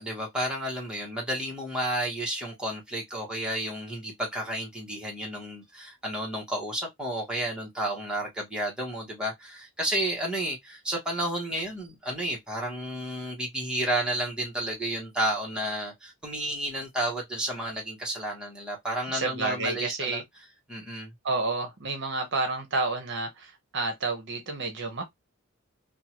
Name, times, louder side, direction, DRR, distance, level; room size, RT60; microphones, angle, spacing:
voice 1, 0.0-20.2 20.7-21.1, right 1 dB, 5° right, 0.9 m, -31 dB
voice 2, 19.1-20.2 21.2-25.0, right 3 dB, 55° right, 0.7 m, -30 dB
2.7 x 2.2 x 2.8 m
head